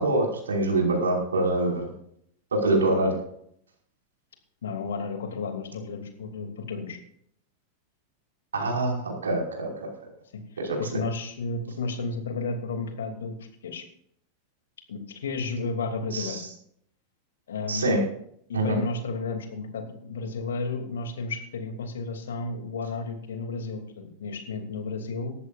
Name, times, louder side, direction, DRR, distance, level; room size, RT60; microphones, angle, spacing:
voice 1, 0.0-1.8 2.5-3.2 8.5-9.9 10.6-10.8 16.1-16.5 17.7-18.0 18.5-18.8, right 2 dB, 70° right, 0 dB, 5.5 m, -25 dB
voice 2, 4.6-7.0 10.3-13.4 13.6-13.8 14.9-16.4 17.5-18.0 18.5-25.3, left 3 dB, 65° left, 5 dB, 2.9 m, -32 dB
19.0 x 15.0 x 2.6 m, 0.68 s
figure-of-eight pair, 90°, 0 cm